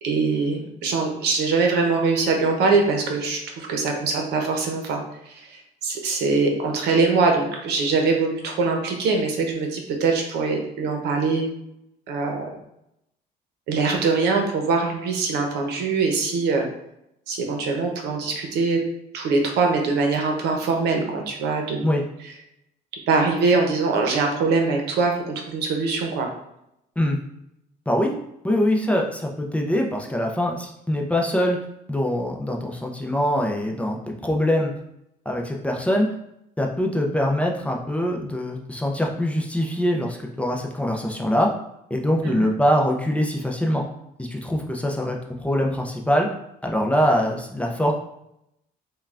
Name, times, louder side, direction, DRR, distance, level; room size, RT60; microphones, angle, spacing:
voice 1, 0.0-11.5 12.1-12.5 13.7-16.7 17.3-18.8 19.1-21.9 23.1-26.3 42.2-42.5, right 4 dB, 80° right, 3 dB, 0.8 m, -23 dB
voice 2, 28.4-31.6 31.9-34.7 35.3-36.1 36.6-41.5 41.9-43.8 44.2-46.3 46.6-47.9, equal, 10° left, 0 dB, 0.5 m, -23 dB
5.3 x 2.3 x 2.4 m, 0.80 s
cardioid pair, 110°, 17 cm